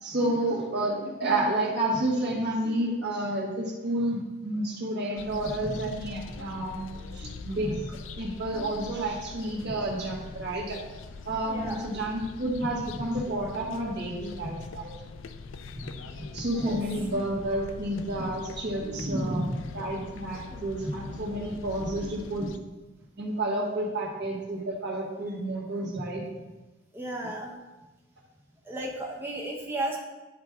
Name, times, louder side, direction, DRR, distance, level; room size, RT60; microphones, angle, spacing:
voice 1, 0.0-10.8 11.2-14.9 16.1-22.5 23.2-26.3, right 1 dB, 60° right, -2 dB, 1.6 m, -30 dB
sound 1, 5.2-22.6, left 4 dB, 75° left, 0.4 m, -43 dB
voice 2, 11.4-11.9 16.5-16.8 20.5-20.6 26.9-27.5 28.7-30.0, right 1 dB, 10° right, -2 dB, 0.7 m, -34 dB
10.0 x 4.6 x 3.6 m, 1.1 s
head